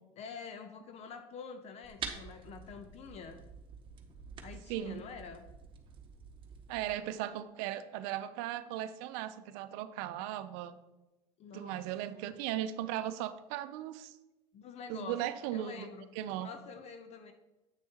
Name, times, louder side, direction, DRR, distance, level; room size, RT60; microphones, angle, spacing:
voice 1, 0.2-3.5 4.4-5.5 11.4-11.9 14.5-15.2 15.5-16.1 16.4-17.3, left 6 dB, 50° left, 8 dB, 0.7 m, -47 dB
sound 1, 1.8-6.9, right 6 dB, 35° right, 1.0 m, -47 dB
voice 2, 4.7-5.0 6.7-10.8 11.5-14.1 14.9-15.9 16.2-16.5, right 12 dB, 75° right, 11 dB, 0.5 m, -37 dB
8.2 x 6.3 x 2.9 m, 1.0 s
supercardioid pair, 100°, 14 cm